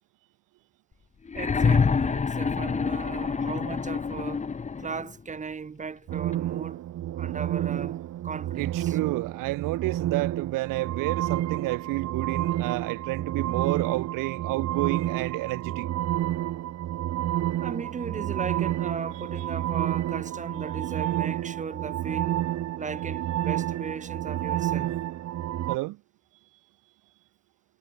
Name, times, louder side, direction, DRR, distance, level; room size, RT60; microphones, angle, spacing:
sound 1, 1.3-5.1 6.3-6.4, left 5 dB, 20° left, 4.0 m, -26 dB
voice 1, 1.3-4.5 4.8-6.8 7.2-9.0 17.6-22.4 22.8-25.0, right 5 dB, 20° right, 6.4 m, -37 dB
sound 2, 6.1-25.8, right 13 dB, 55° right, 5.2 m, -30 dB
voice 2, 8.5-15.9 25.7-26.0, right 20 dB, 75° right, 4.0 m, -30 dB
cardioid pair, 150°, 32 cm